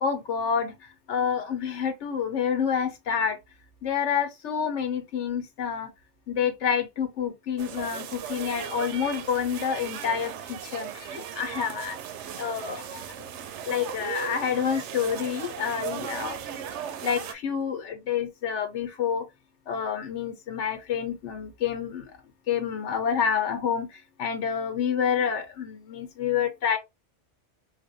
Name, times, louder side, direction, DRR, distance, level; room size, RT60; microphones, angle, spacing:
voice 1, 0.0-3.4 3.8-5.9 6.3-12.0 12.3-13.0 13.7-16.4 17.0-19.3 19.7-22.1 22.5-26.8, left 7 dB, 85° left, 1.0 m, -28 dB
sound 1, 7.6-17.3, right 8 dB, 85° right, 0.9 m, -37 dB
3.9 x 2.5 x 2.6 m
omnidirectional pair, 1.2 m